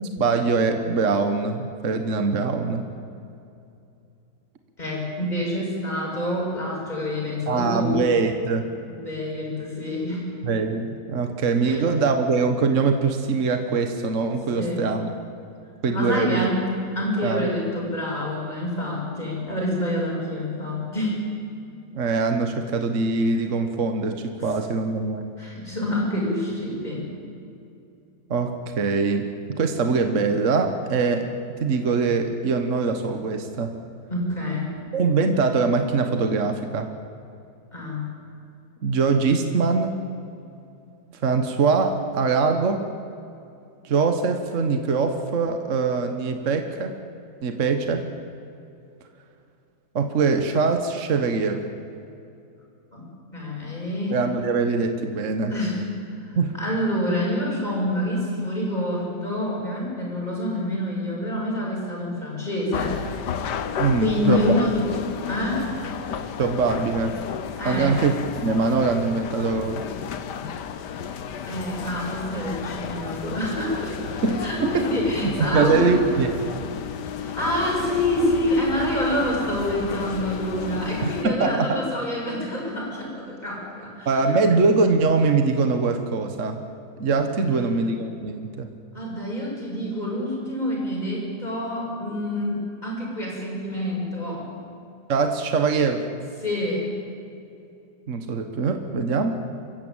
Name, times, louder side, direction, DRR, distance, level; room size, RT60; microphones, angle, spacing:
voice 1, 0.0-2.9 7.5-8.7 10.4-15.1 15.8-16.5 17.2-17.5 21.9-25.2 28.3-31.3 31.6-33.8 34.9-36.9 38.8-40.0 41.2-42.9 43.8-46.9 47.4-48.1 49.9-51.7 54.1-55.5 56.4-56.6 63.8-64.6 66.4-67.2 67.6-68.1 68.4-69.8 74.2-74.9 75.2-76.3 81.0-81.8 84.0-86.6 87.0-88.7 95.1-96.1 98.1-99.3, right 4 dB, 50° right, 6 dB, 1.6 m, -23 dB
voice 2, 4.8-8.0 8.9-10.3 11.6-11.8 14.5-14.9 15.9-16.7 17.0-21.2 25.4-27.1 34.1-34.7 37.7-38.1 52.9-53.1 53.3-54.2 55.4-55.8 56.2-63.0 64.0-64.9 65.3-65.7 67.6-68.0 71.5-74.1 74.4-76.0 77.2-84.1 87.4-87.7 88.9-94.5 96.4-96.9, left 1 dB, 25° left, -3 dB, 6.9 m, -27 dB
sound 1, 62.7-81.3, left 8 dB, 90° left, 1.7 m, -33 dB
26.0 x 15.0 x 9.0 m, 2.6 s
omnidirectional pair, 1.8 m